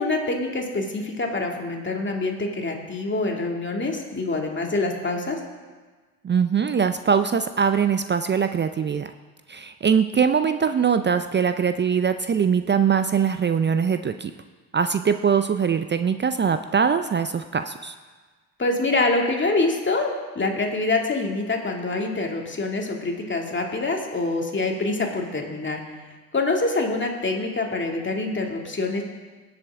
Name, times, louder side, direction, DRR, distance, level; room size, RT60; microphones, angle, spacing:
voice 1, 0.0-5.4 18.6-25.8 26.3-29.0, left 2 dB, 25° left, 1 dB, 2.3 m, -25 dB
voice 2, 6.2-9.1 9.5-14.3 14.7-17.9, right 7 dB, 25° right, 10 dB, 0.5 m, -22 dB
18.0 x 7.8 x 3.6 m, 1.4 s
hypercardioid pair, 55°, 42 cm